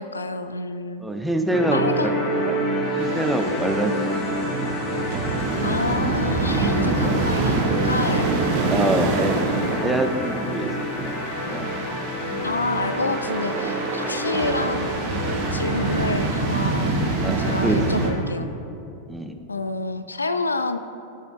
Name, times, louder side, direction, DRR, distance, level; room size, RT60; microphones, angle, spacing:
voice 1, 0.0-1.0 1.7-2.2 5.6-8.3 12.4-15.0 15.5-17.0 17.4-18.5 19.5-20.8, left 3 dB, 80° left, 11 dB, 0.3 m, -28 dB
voice 2, 1.0-2.6 3.0-4.2 4.5-4.7 7.0-7.2 8.7-9.4 9.7-10.7 11.0-11.2 11.5-11.7 15.9-16.0 17.2-18.1 19.1-19.4, right 1 dB, 5° right, 4 dB, 0.6 m, -26 dB
sound 1, 1.5-18.1, equal, 30° left, 1.7 m, -28 dB
sound 2, 3.0-18.1, right 3 dB, 45° right, 1.1 m, -26 dB
14.0 x 6.6 x 2.6 m, 2.8 s
figure-of-eight pair, 90°, 0 cm